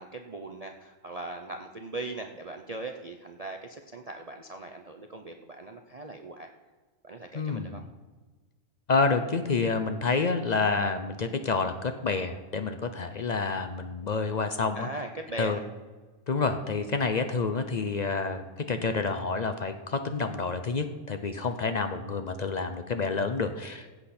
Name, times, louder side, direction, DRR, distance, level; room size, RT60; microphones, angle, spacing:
voice 1, 0.0-6.5 7.0-7.9 14.7-15.6, right 2 dB, 45° right, 4 dB, 0.4 m, -39 dB
voice 2, 7.3-7.8 8.9-14.9 15.4-15.6 16.3-24.0, left 4 dB, 60° left, 8 dB, 0.4 m, -28 dB
15.5 x 8.2 x 4.2 m, 1.3 s
omnidirectional pair, 1.5 m